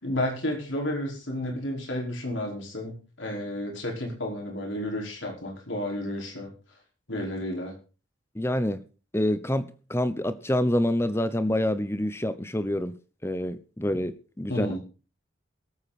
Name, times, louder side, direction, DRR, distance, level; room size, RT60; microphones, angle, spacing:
voice 1, 0.0-6.5 7.1-7.7 14.5-14.8, left 1 dB, 70° left, 5.3 m, -31 dB
voice 2, 8.3-8.8 9.1-12.9 13.2-14.8, left 1 dB, 10° left, 0.9 m, -27 dB
21.5 x 8.7 x 4.3 m
head